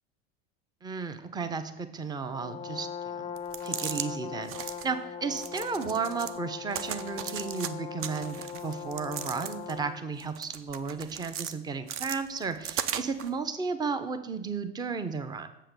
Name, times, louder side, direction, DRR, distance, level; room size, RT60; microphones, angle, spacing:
voice 1, 0.8-3.3 3.6-15.5, right 5 dB, 15° right, 10 dB, 0.7 m, -34 dB
Brass instrument, 2.3-10.1, left 7 dB, 20° left, 0.5 m, -40 dB
sound 1, 3.4-4.1 4.4-4.9 5.3-6.4 6.7-7.7 8.0-9.8 10.2-11.5 11.9-13.3, right 9 dB, 45° right, 0.6 m, -37 dB
7.4 x 5.7 x 6.7 m, 0.88 s
hypercardioid pair, 100°, 32 cm